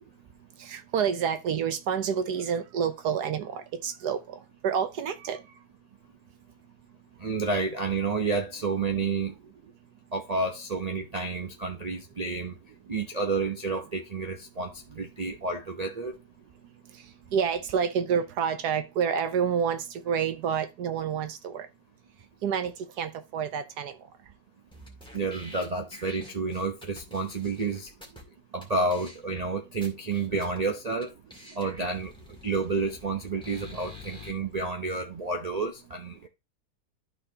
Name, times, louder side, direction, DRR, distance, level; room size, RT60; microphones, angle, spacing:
voice 1, 0.6-5.4 17.3-21.7 22.4-23.9, right 7 dB, 75° right, 1.3 m, -28 dB
voice 2, 7.2-9.3 10.1-12.5 12.9-16.2 25.1-27.9 28.5-31.1 31.6-32.1 32.4-36.3, right 3 dB, 40° right, 0.6 m, -30 dB
sound 1, 24.7-28.2 28.6-28.7 28.9-29.4 29.8-30.6 31.0-31.1 31.3-34.3, left 2 dB, 5° left, 1.9 m, -47 dB
12.0 x 4.2 x 2.8 m
omnidirectional pair, 1.7 m